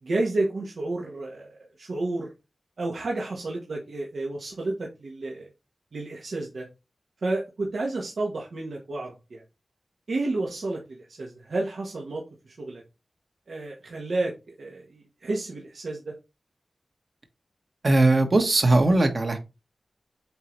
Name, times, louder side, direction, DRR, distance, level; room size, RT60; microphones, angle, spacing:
voice 1, 0.0-2.3 2.8-5.5 5.9-6.7 7.2-9.4 10.1-12.8 13.5-16.1, right 2 dB, 75° right, -2 dB, 1.5 m, -31 dB
voice 2, 17.8-19.4, right 2 dB, 50° right, 4 dB, 1.5 m, -19 dB
7.9 x 4.0 x 3.2 m, 0.27 s
wide cardioid pair, 85°, 0 cm